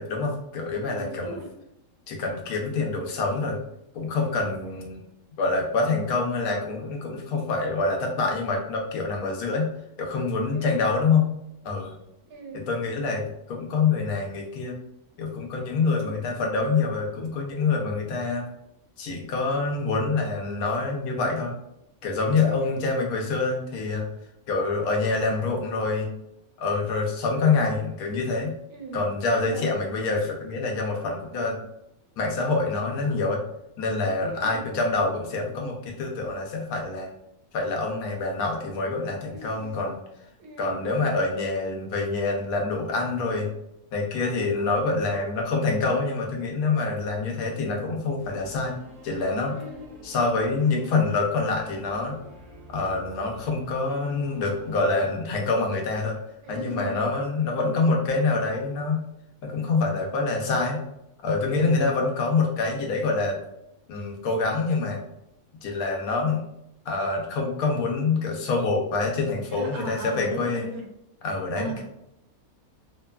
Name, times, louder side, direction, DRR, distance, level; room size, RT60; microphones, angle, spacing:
voice 1, 0.0-1.4 2.1-3.6 3.9-5.0 5.4-9.7 10.0-11.3 11.6-11.9 12.5-14.7 15.2-18.5 19.0-21.5 22.0-24.1 24.5-26.1 26.6-28.5 28.9-31.6 32.2-33.4 33.8-37.1 37.5-40.0 40.6-43.5 43.9-48.7 49.0-49.6 50.0-52.1 52.7-56.2 56.5-59.0 59.4-60.8 61.2-63.4 63.9-65.0 65.6-66.4 66.9-70.7 71.2-71.8, left 3 dB, 90° left, 1 dB, 1.1 m, -26 dB
voice 2, 0.8-1.5 4.2-4.5 10.5-10.7 12.3-12.7 15.8-16.2 22.3-22.8 28.7-29.0 29.4-29.6 34.1-34.6 39.3-39.7 40.4-40.8 49.6-49.9 56.4-57.0 57.6-57.9 61.5-61.9 69.5-70.8 71.6-71.8, right 2 dB, 85° right, 1 dB, 1.2 m, -38 dB
Singing / Musical instrument, 48.2-55.2, equal, 60° right, 0.8 m, -47 dB
3.0 x 2.2 x 2.2 m, 0.83 s
omnidirectional pair, 1.5 m